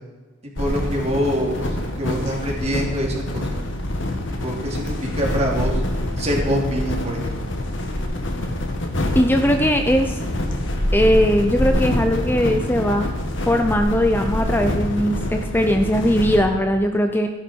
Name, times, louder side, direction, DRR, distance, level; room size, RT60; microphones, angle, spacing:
sound 1, 0.6-16.4, left 1 dB, 65° left, 2.0 m, -25 dB
voice 1, 0.6-3.6 4.4-5.8 6.2-7.4, equal, 35° right, -1 dB, 3.1 m, -25 dB
voice 2, 9.1-10.2 10.9-13.1 13.5-17.3, equal, 10° left, 5 dB, 0.7 m, -19 dB
16.0 x 11.0 x 4.6 m, 1.3 s
head